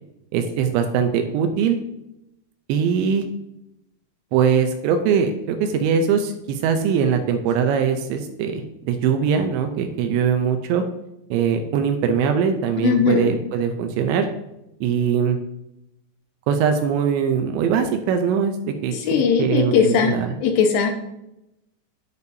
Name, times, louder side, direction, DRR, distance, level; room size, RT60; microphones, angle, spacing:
voice 1, 0.3-1.8 2.7-3.2 4.3-10.8 11.3-14.3 14.8-15.4 16.5-20.4, right 7 dB, 85° right, 6 dB, 2.9 m, -21 dB
voice 2, 12.8-13.3 18.9-20.2 20.4-20.9, left 6 dB, 85° left, 3 dB, 2.8 m, -19 dB
9.9 x 6.8 x 2.7 m, 0.85 s
omnidirectional pair, 5.1 m